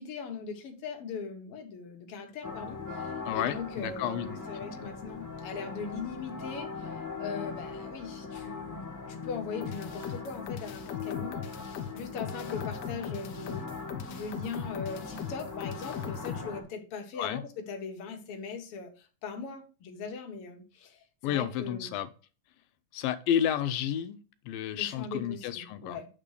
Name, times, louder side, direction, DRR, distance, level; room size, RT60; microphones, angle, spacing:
voice 1, 0.0-6.9 7.2-13.6 14.1-21.9 24.7-26.1, left 5 dB, 50° left, 4 dB, 1.9 m, -40 dB
sound 1, 2.4-16.6, left 4 dB, 30° left, 0.3 m, -40 dB
voice 2, 3.3-4.4 4.8-4.9 17.2-17.4 21.2-22.1 22.9-26.0, left 10 dB, 90° left, 11 dB, 2.5 m, -31 dB
sound 2, 9.6-16.4, left 8 dB, 70° left, 1.7 m, -39 dB
9.1 x 3.7 x 6.6 m, 0.35 s
omnidirectional pair, 4.0 m